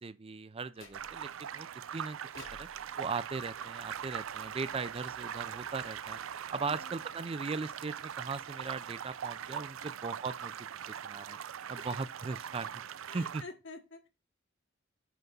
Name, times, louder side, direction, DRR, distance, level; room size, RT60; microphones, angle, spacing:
voice 1, 0.0-1.7 1.9-2.7 3.0-6.2 6.5-10.5 10.9-11.4 11.7-12.7 13.1-13.4, right 4 dB, 30° right, 0.4 m, -38 dB
sound 1, 0.7-1.4 2.3-4.6, left 2 dB, 80° left, 3.0 m, -56 dB
sound 2, 0.9-13.4, right 8 dB, 85° right, 0.5 m, -41 dB
voice 2, 6.6-7.3 13.1-14.1, left 3 dB, 65° left, 1.6 m, -49 dB
9.3 x 3.6 x 5.4 m
head